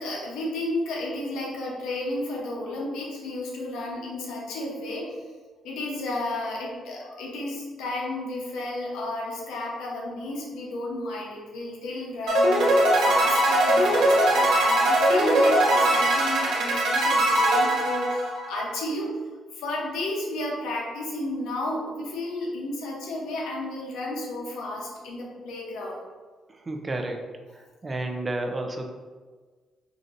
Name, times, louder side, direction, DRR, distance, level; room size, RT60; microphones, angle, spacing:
voice 1, 0.0-5.1 5.6-19.1 19.5-26.0, left 1 dB, 85° left, -2 dB, 0.9 m, -32 dB
sound 1, 12.3-18.6, right 1 dB, 85° right, 1.0 m, -21 dB
voice 2, 26.7-27.2 27.8-28.9, right 2 dB, 25° right, 3 dB, 0.5 m, -30 dB
5.0 x 2.7 x 2.6 m, 1.4 s
cardioid pair, 90°, 0 cm